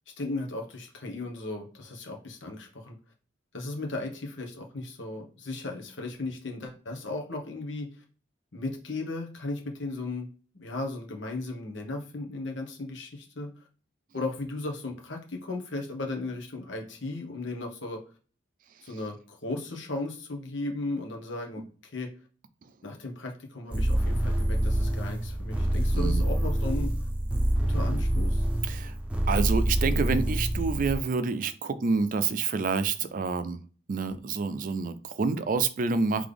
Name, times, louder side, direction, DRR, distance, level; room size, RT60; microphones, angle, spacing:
voice 1, 0.2-3.0 3.5-8.0 8.5-10.3 10.5-13.5 14.1-18.0 18.8-22.1 22.8-26.9 27.7-28.5, left 2 dB, 80° left, 2 dB, 1.3 m, -36 dB
sound 1, 23.7-31.0, right 1 dB, 5° right, 0.8 m, -26 dB
voice 2, 28.6-28.9 29.3-33.6 33.9-36.3, right 4 dB, 45° right, 13 dB, 0.4 m, -28 dB
4.0 x 3.3 x 3.4 m, 0.38 s
head